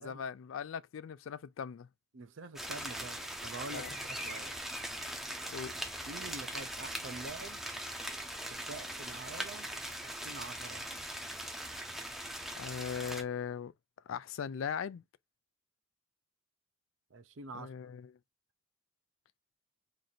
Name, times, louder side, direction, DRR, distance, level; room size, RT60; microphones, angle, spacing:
voice 1, 0.0-1.9 3.7-3.9 5.5-5.7 12.6-13.7 14.1-15.0 17.5-18.1, left 7 dB, 70° left, 0.3 m, -39 dB
voice 2, 2.1-4.6 6.0-7.6 8.5-9.7 10.0-10.9 17.1-17.7, right 3 dB, 65° right, 0.6 m, -46 dB
sound 1, 2.6-13.2, right 1 dB, ahead, 0.6 m, -41 dB
3.1 x 2.6 x 3.9 m
head